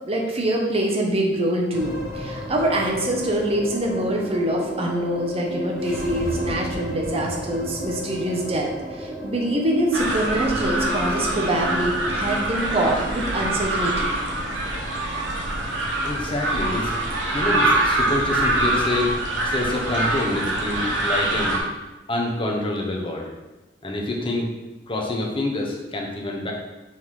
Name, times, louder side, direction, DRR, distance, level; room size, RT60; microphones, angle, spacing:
voice 1, 0.1-14.1, right 1 dB, 35° right, 0 dB, 1.0 m, -24 dB
sound 1, 1.7-20.2, equal, 5° right, 1.3 m, -34 dB
sound 2, 9.9-21.6, right 1 dB, 90° right, 1.2 m, -24 dB
voice 2, 16.0-19.1 19.4-21.6 22.1-23.3 23.8-24.5 24.9-26.5, left 1 dB, 30° left, 0 dB, 1.0 m, -27 dB
5.7 x 4.0 x 4.8 m, 1.1 s
head